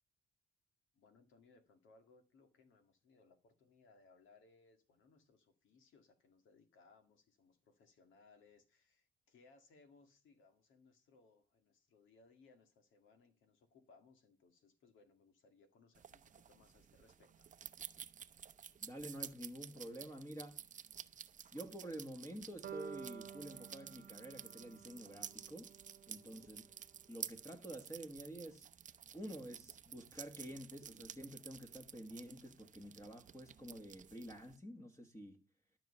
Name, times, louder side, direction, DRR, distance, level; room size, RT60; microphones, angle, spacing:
voice 1, 0.9-17.5 26.1-26.5, left 4 dB, 80° left, 2.0 m, -67 dB
sound 1, 16.0-34.6, right 8 dB, 40° right, 0.6 m, -53 dB
voice 2, 18.8-20.6 21.5-25.7 26.1-26.6 27.1-28.7 29.1-35.4, equal, 15° left, 1.5 m, -49 dB
sound 2, 22.6-26.7, right 8 dB, 55° right, 1.1 m, -52 dB
12.5 x 6.1 x 5.5 m
cardioid pair, 90°, 20 cm